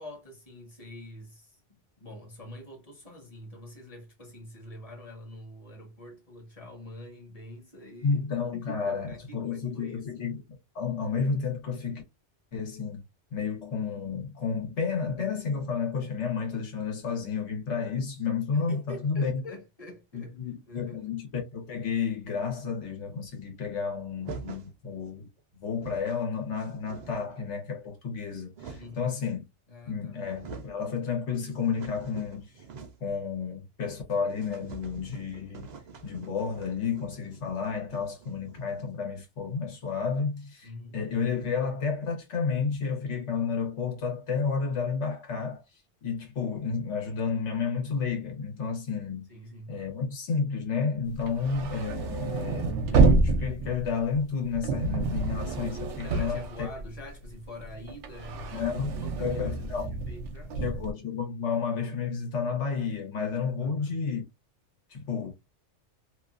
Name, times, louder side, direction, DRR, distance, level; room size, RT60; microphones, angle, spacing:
voice 1, 0.0-8.2 8.5-10.3 18.5-20.4 20.7-21.1 28.8-29.1 29.7-30.3 40.6-41.0 49.3-49.8 51.3-51.5 56.0-60.6 63.6-64.0, left 1 dB, 35° left, 1.1 m, -46 dB
voice 2, 8.0-10.4 10.7-12.0 12.5-13.0 13.3-19.4 20.1-25.3 25.6-29.4 29.9-32.6 33.0-35.7 36.0-49.3 49.7-56.7 58.5-58.9 59.2-60.0 60.6-64.2 64.9-65.3, left 5 dB, 75° left, 1.4 m, -31 dB
sound 1, 24.2-24.7 25.4-25.5 25.6-26.2 26.6-27.4 28.1-29.1 29.8-29.9 30.2-30.8 31.2-33.2 33.4-33.5 33.8-33.9 34.3-38.8, right 5 dB, 50° right, 0.5 m, -46 dB
sound 2, 51.1-57.3 57.6-60.9, right 3 dB, 80° right, 0.9 m, -28 dB
2.9 x 2.3 x 2.4 m
omnidirectional pair, 1.2 m